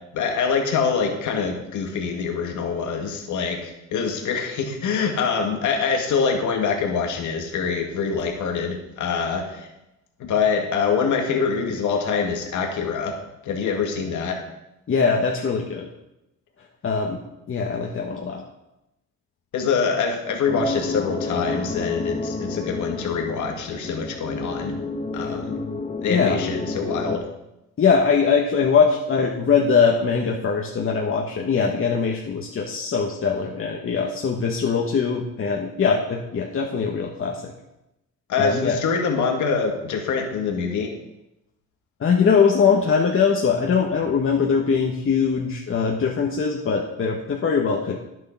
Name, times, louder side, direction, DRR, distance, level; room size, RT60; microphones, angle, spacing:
voice 1, 0.1-9.7 10.2-13.2 13.4-14.4 19.5-24.7 25.1-25.6 26.0-27.3 38.3-40.9, left 5 dB, 75° left, 3 dB, 1.9 m, -25 dB
voice 2, 14.9-15.9 16.8-17.2 17.5-18.4 26.1-26.4 27.8-37.5 38.4-38.8 42.0-48.0, left 5 dB, 45° left, 0 dB, 1.4 m, -21 dB
sound 1, 20.5-27.2, left 3 dB, 25° left, 1.1 m, -30 dB
10.5 x 7.8 x 5.8 m, 0.90 s
cardioid pair, 90°, 30 cm